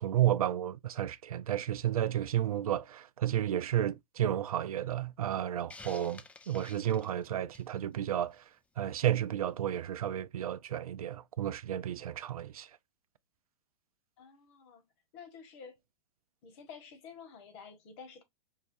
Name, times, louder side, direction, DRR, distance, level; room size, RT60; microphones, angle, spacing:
voice 1, 0.0-8.4 8.8-12.7, right 11 dB, 80° right, 0.5 m, -32 dB
Hiss, 5.7-7.8, left 3 dB, 5° left, 0.4 m, -51 dB
voice 2, 14.2-14.8 15.1-15.8 16.4-18.2, left 6 dB, 50° left, 1.5 m, -50 dB
5.4 x 2.3 x 2.6 m
hypercardioid pair, 105°, 18 cm